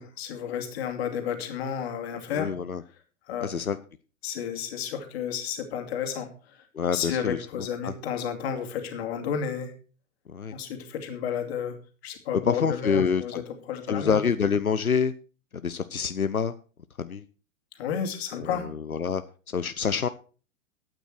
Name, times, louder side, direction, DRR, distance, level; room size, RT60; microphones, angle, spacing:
voice 1, 0.0-2.5 3.3-3.5 4.2-6.6 6.9-9.7 10.5-11.8 12.0-13.4 13.7-14.2 17.8-18.7, left 8 dB, 45° left, 5 dB, 2.7 m, -32 dB
voice 2, 2.3-2.8 3.4-3.8 6.7-7.9 10.3-10.5 12.4-13.4 13.9-15.1 15.5-16.5 17.0-17.2 18.3-19.2 19.5-20.1, left 6 dB, 90° left, 12 dB, 0.7 m, -27 dB
12.5 x 9.0 x 4.6 m, 0.38 s
figure-of-eight pair, 105°, 42 cm